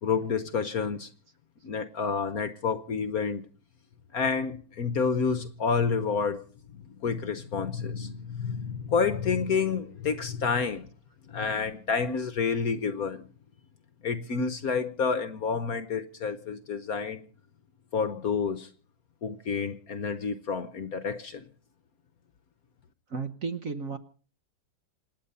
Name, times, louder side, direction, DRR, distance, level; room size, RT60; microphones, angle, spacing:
voice 1, 0.0-1.1 1.6-3.4 4.1-6.4 6.8-10.9 11.3-13.3 14.0-17.2 17.9-18.7 19.2-21.4, left 5 dB, 55° left, 1.2 m, -29 dB
voice 2, 23.1-24.0, right 4 dB, 50° right, 1.3 m, -33 dB
27.0 x 9.4 x 5.5 m
omnidirectional pair, 2.2 m